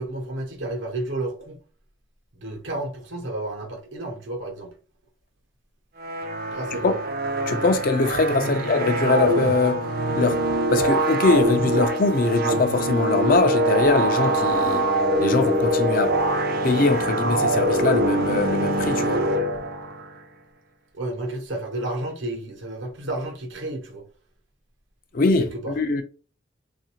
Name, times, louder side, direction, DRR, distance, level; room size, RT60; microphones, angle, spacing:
voice 1, 0.0-1.6 2.3-4.7 6.5-6.9 8.4-8.6 20.9-24.0 25.4-25.7, right 1 dB, 85° right, 0.9 m, -31 dB
sound 1, 6.0-20.1, right 1 dB, 50° right, 0.4 m, -23 dB
voice 2, 7.5-9.9 10.1-10.4 10.7-14.9 15.2-16.2 16.6-19.2 25.1-26.0, left 3 dB, 45° left, 0.4 m, -22 dB
3.4 x 2.5 x 2.9 m
head